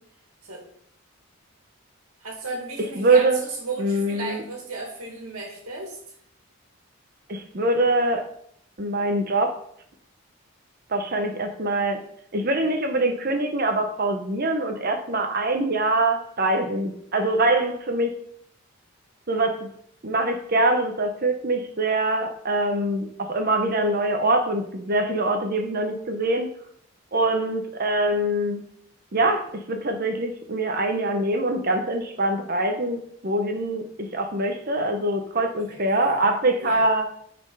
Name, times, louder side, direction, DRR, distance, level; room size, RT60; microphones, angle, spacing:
voice 1, 2.2-6.0 35.6-36.2 36.6-36.9, right 3 dB, 90° right, 0 dB, 2.1 m, -35 dB
voice 2, 3.0-3.4 3.8-4.4 7.3-8.3 8.8-9.6 10.9-12.0 12.3-18.1 19.3-19.7 20.0-26.5 27.1-28.6 29.1-33.8 34.1-37.1, right 2 dB, 45° right, 5 dB, 0.9 m, -24 dB
9.4 x 4.4 x 5.5 m, 0.67 s
head